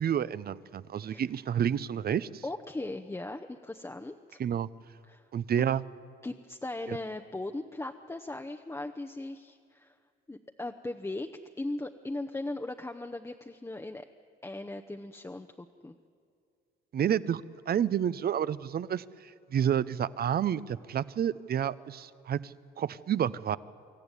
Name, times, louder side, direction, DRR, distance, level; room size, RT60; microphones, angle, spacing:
voice 1, 0.0-2.4 4.4-4.7 5.3-5.8 6.9-7.0 16.9-23.6, right 9 dB, 50° right, 17 dB, 0.7 m, -30 dB
voice 2, 2.4-4.4 5.1-5.2 6.2-9.9 10.3-11.3 11.6-14.0 14.4-15.9, left 2 dB, 15° left, 5 dB, 0.8 m, -38 dB
25.5 x 14.0 x 9.8 m, 2.3 s
cardioid pair, 90°, 20 cm